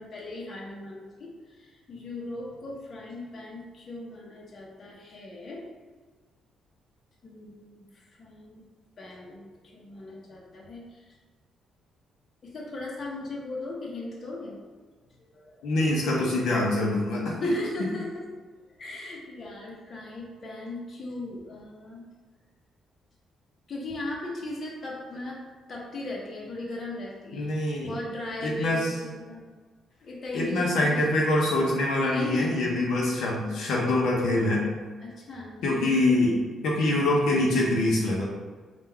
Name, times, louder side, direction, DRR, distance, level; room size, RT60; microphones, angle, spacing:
voice 1, 0.0-5.6 7.2-8.6 9.0-11.2 12.4-14.6 15.2-15.6 17.4-18.3 18.8-22.1 23.7-25.4 25.7-27.5 27.9-29.4 30.0-31.2 32.0-32.6 35.0-36.2, left 2 dB, 45° left, -2 dB, 0.9 m, -38 dB
voice 2, 15.6-17.6 27.3-27.9 28.4-28.9 30.3-34.7 35.6-36.3 36.6-38.2, left 1 dB, 75° left, -3 dB, 0.8 m, -24 dB
3.7 x 2.5 x 4.3 m, 1.4 s
cardioid pair, 90°, 0 cm